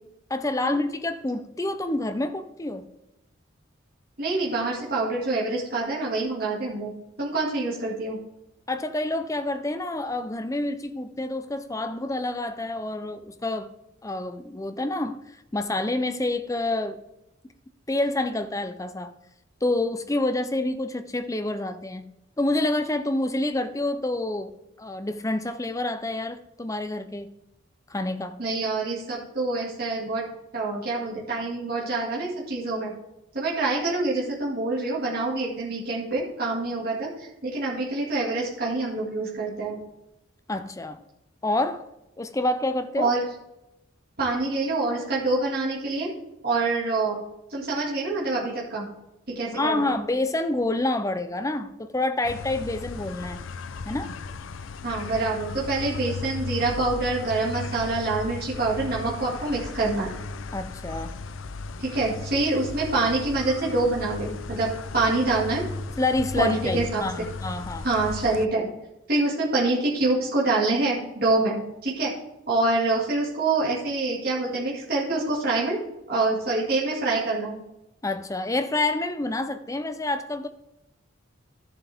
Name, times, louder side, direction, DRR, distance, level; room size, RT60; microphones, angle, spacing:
voice 1, 0.3-2.9 8.7-13.7 14.0-17.0 17.9-19.1 19.6-22.1 22.4-27.3 27.9-28.4 40.5-41.0 41.4-41.8 42.2-43.1 49.5-53.4 53.8-54.2 60.5-61.2 66.0-67.9 78.0-80.5, left 2 dB, 15° left, 9 dB, 0.5 m, -28 dB
voice 2, 4.2-6.9 7.2-8.2 28.4-30.2 30.5-32.9 33.3-39.8 43.0-43.3 44.2-46.1 46.4-47.2 47.5-48.9 49.3-49.9 54.8-60.1 61.8-65.7 66.4-67.0 67.8-68.7 69.1-72.1 72.5-75.8 76.1-77.6, right 2 dB, 50° right, -5 dB, 2.2 m, -26 dB
sound 1, 52.2-68.5, left 3 dB, 80° left, 0.5 m, -36 dB
13.5 x 7.1 x 3.5 m, 0.90 s
head